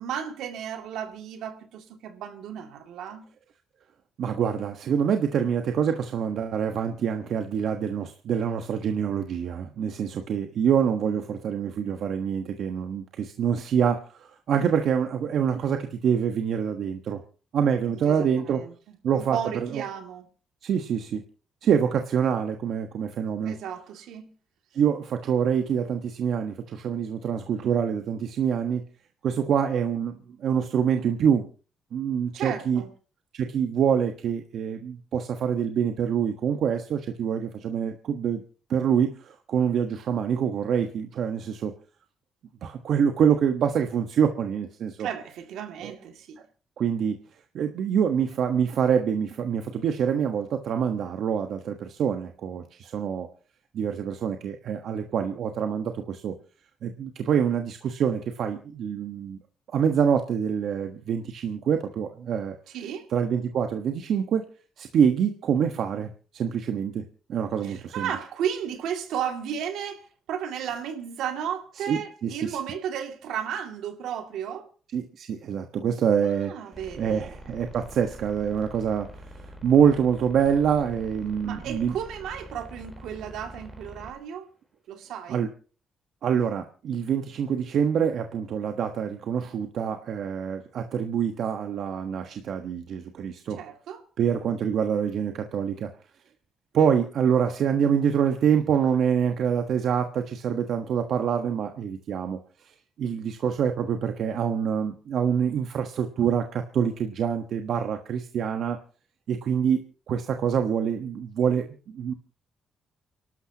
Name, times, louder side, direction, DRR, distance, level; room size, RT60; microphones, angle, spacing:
voice 1, 0.0-3.2 17.9-18.7 19.1-20.3 23.4-24.3 32.3-32.9 45.0-46.4 62.7-63.1 67.6-74.7 76.2-77.3 81.4-84.5 84.9-85.4 93.5-94.0, right 8 dB, 85° right, 2.4 m, -34 dB
voice 2, 4.2-17.2 17.5-18.6 19.0-19.8 20.6-21.2 21.6-23.5 24.7-28.8 29.2-30.1 30.4-31.4 31.9-32.8 33.3-38.4 38.7-41.7 42.6-45.1 45.8-45.9 46.8-47.2 47.5-53.3 53.7-56.3 56.8-59.4 59.7-62.5 63.1-64.4 64.8-67.0 67.3-68.1 71.8-72.6 74.9-76.5 77.0-81.9 85.3-85.5 86.2-93.6 94.2-95.9 96.7-102.7 103.0-108.8 109.3-112.1, right 7 dB, 70° right, 1.3 m, -26 dB
sound 1, 76.7-84.1, right 1 dB, 5° left, 4.0 m, -45 dB
29.5 x 12.5 x 2.9 m
cardioid pair, 90°, 0 cm